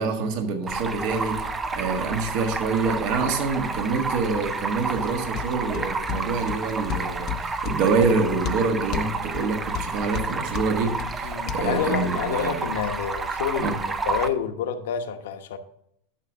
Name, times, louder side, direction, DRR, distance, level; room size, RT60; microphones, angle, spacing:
voice 1, 0.0-12.6 13.6-13.7, right 4 dB, 50° right, 5 dB, 1.6 m, -26 dB
Stream, 0.7-14.3, right 4 dB, 15° right, 0.5 m, -30 dB
sound 1, 5.0-11.6, left 13 dB, 40° left, 0.6 m, -35 dB
voice 2, 11.2-13.7 14.1-15.6, left 8 dB, 80° left, 7 dB, 1.0 m, -28 dB
12.0 x 6.4 x 3.6 m, 0.74 s
supercardioid pair, 140°, 0 cm